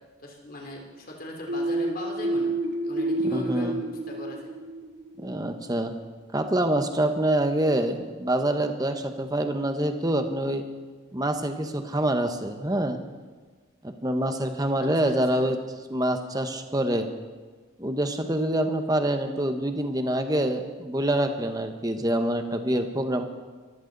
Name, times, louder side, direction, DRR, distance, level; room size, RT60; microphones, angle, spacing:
voice 1, 0.2-2.5 2.8-3.8 4.1-4.5 14.8-15.5, left 1 dB, 45° left, 0 dB, 3.2 m, -39 dB
sound 1, 1.5-5.1, right 1 dB, 55° right, 1.9 m, -29 dB
voice 2, 3.2-3.8 5.2-5.9 6.3-10.6 11.1-13.0 14.0-15.6 15.9-17.1 17.8-23.2, right 1 dB, 20° right, 6 dB, 1.1 m, -26 dB
23.0 x 15.5 x 4.1 m, 1.4 s
head